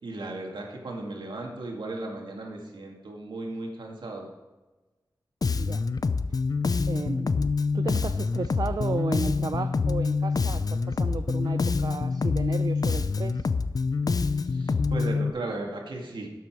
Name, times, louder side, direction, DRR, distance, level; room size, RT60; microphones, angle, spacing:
voice 1, 0.0-4.3 14.5-16.3, right 2 dB, 90° right, 0 dB, 2.2 m, -36 dB
Bass guitar, 5.4-15.3, left 4 dB, 55° left, 0.5 m, -26 dB
voice 2, 6.9-13.5, right 4 dB, 55° right, 10 dB, 0.4 m, -34 dB
12.5 x 8.1 x 4.7 m, 1.2 s
wide cardioid pair, 95°, 8 cm